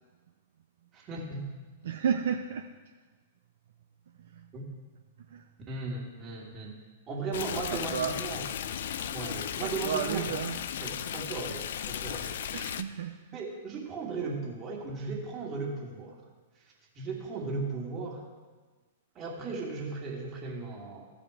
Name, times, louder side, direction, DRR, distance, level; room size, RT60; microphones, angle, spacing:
voice 1, 0.9-1.5 4.5-4.7 5.7-6.8 7.1-8.4 9.0-10.3 10.8-12.4 13.3-16.2 16.9-18.2 19.1-21.1, right 3 dB, 30° right, -2 dB, 2.5 m, -36 dB
voice 2, 1.8-2.7 4.3-4.5 5.3-5.5 7.5-8.2 9.6-10.6 12.5-13.2, right 7 dB, 65° right, 5 dB, 0.5 m, -32 dB
Stream, 7.3-12.8, left 9 dB, 60° left, 0.5 m, -35 dB
15.0 x 5.0 x 5.0 m, 1.4 s
figure-of-eight pair, 105°, 0 cm